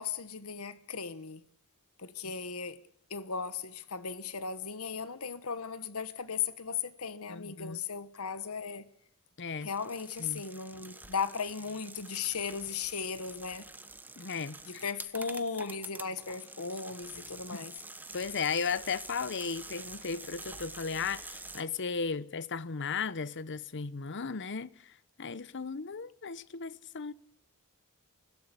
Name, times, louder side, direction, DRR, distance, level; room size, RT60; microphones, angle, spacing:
voice 1, 0.0-1.4 2.0-2.8 3.1-8.8 9.6-13.6 14.7-17.7, left 6 dB, 70° left, 1.3 m, -36 dB
voice 2, 7.3-7.8 9.4-9.7 10.2-10.4 14.2-14.8 17.5-17.6 18.1-24.9 25.2-27.1, left 5 dB, 55° left, 0.9 m, -35 dB
sound 1, 9.6-21.6, right 3 dB, 10° right, 1.2 m, -47 dB
25.0 x 16.5 x 9.9 m
head